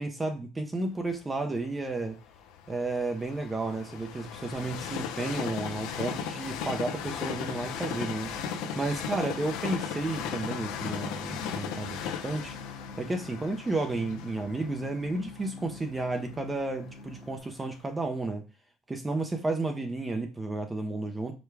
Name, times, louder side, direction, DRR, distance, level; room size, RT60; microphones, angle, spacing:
voice 1, 0.0-2.2 2.7-8.3 8.8-12.6 13.0-18.4 18.9-21.3, right 2 dB, 15° right, 4 dB, 0.5 m, -32 dB
Train, 1.1-17.1 17.7-17.8, left 7 dB, 85° left, 0.6 m, -37 dB
sound 1, 5.6-17.4, left 3 dB, 65° right, 1.5 m, -46 dB
5.0 x 2.2 x 4.6 m, 0.32 s
cardioid pair, 125°, 0 cm